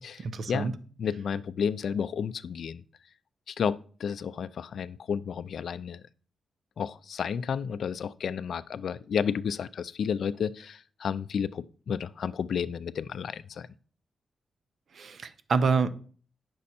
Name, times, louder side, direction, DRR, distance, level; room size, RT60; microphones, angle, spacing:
voice 1, 0.2-0.7 14.9-15.9, right 5 dB, 55° right, 12 dB, 0.7 m, -27 dB
voice 2, 1.0-2.8 3.5-6.0 6.8-13.7, left 7 dB, 65° left, 16 dB, 0.4 m, -31 dB
9.6 x 6.3 x 4.2 m, 0.43 s
wide cardioid pair, 130°, 0 cm